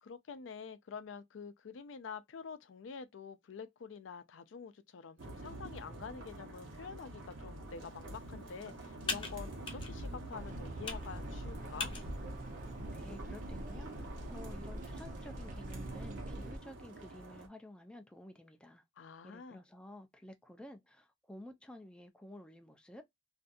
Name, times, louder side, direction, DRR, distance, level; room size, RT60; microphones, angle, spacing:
voice 1, 0.0-11.9 19.0-19.6, left 6 dB, 75° left, 0.4 m, -47 dB
sound 1, 5.2-17.5, right 1 dB, 70° right, 1.0 m, -47 dB
Computer keyboard, 7.6-14.4, left 4 dB, 25° left, 0.8 m, -46 dB
sound 2, 10.3-16.6, right 1 dB, 45° right, 0.6 m, -45 dB
voice 2, 12.9-18.8 19.2-23.0, left 1 dB, 5° left, 0.4 m, -52 dB
2.6 x 2.3 x 2.4 m
head